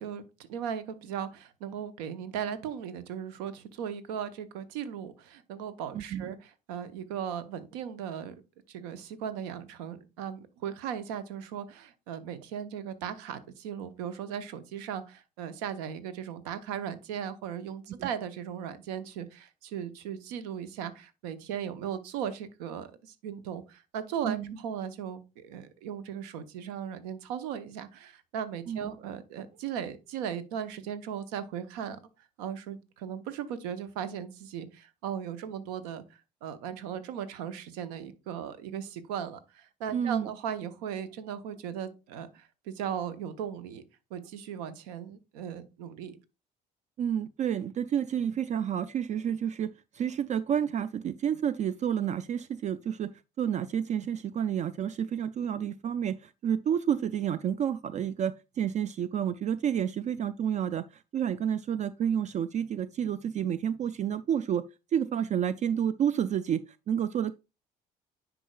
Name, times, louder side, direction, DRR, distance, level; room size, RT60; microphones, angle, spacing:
voice 1, 0.0-6.4 6.7-8.3 8.7-32.0 32.4-36.0 36.4-43.8 44.1-46.2, right 8 dB, 70° right, 0.8 m, -37 dB
voice 2, 5.9-6.3 18.0-18.1 24.2-24.5 28.7-28.9 39.9-40.3 47.0-53.1 53.4-64.6 64.9-66.6 66.9-67.3, right 9 dB, 35° right, 0.3 m, -30 dB
9.8 x 4.8 x 2.3 m
hypercardioid pair, 55°, 21 cm